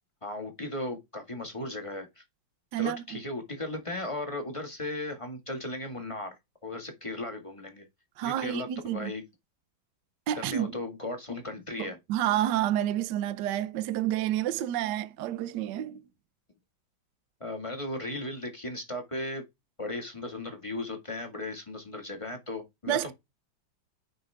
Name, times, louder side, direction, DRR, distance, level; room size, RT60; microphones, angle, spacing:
voice 1, 0.2-2.2 2.8-6.4 6.6-7.9 8.2-9.2 10.3-12.0 17.4-19.4 19.8-23.1, left 2 dB, 15° left, 1.7 m, -36 dB
voice 2, 2.7-3.0 8.2-9.1 10.3-10.7 11.8-16.0 22.9-23.1, right 12 dB, 65° right, 1.3 m, -29 dB
10.0 x 5.3 x 3.5 m
omnidirectional pair, 2.2 m